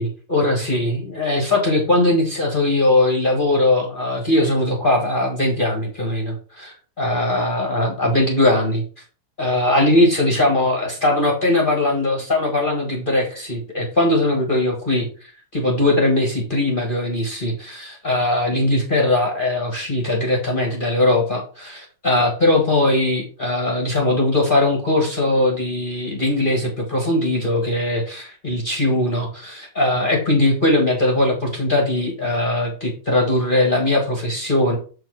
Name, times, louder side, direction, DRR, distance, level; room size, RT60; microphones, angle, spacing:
voice 1, 0.3-8.8 9.4-34.8, left 1 dB, 25° left, 0 dB, 1.4 m, -20 dB
7.3 x 4.8 x 4.6 m, 0.38 s
omnidirectional pair, 2.3 m